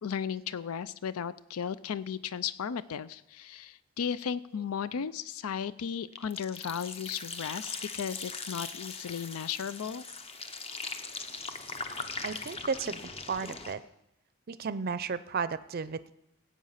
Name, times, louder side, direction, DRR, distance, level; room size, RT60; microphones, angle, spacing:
voice 1, 0.0-10.0, left 7 dB, 85° left, 17 dB, 0.4 m, -35 dB
sound 1, 6.1-13.7, left 4 dB, 30° left, 0.8 m, -40 dB
voice 2, 12.2-13.8 14.5-16.1, right 5 dB, 45° right, 14 dB, 0.5 m, -34 dB
17.0 x 8.4 x 5.6 m, 0.85 s
head